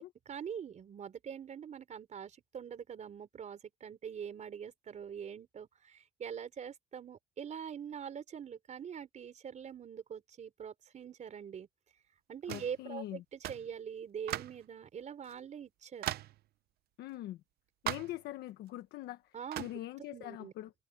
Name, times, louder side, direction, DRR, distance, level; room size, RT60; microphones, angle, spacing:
voice 1, 0.3-11.7 12.3-16.2 19.3-19.7 20.1-20.5, right 8 dB, 45° right, 4.0 m, -44 dB
voice 2, 12.5-13.2 17.0-17.4 17.8-19.2 19.6-20.7, left 15 dB, 80° left, 1.3 m, -42 dB
sound 1, 12.5-12.8 13.4-13.7 14.3-14.6 15.3-15.4 16.0-16.4 17.9-18.2 19.5-19.8, right 14 dB, 70° right, 0.7 m, -38 dB
cardioid pair, 110°, 17 cm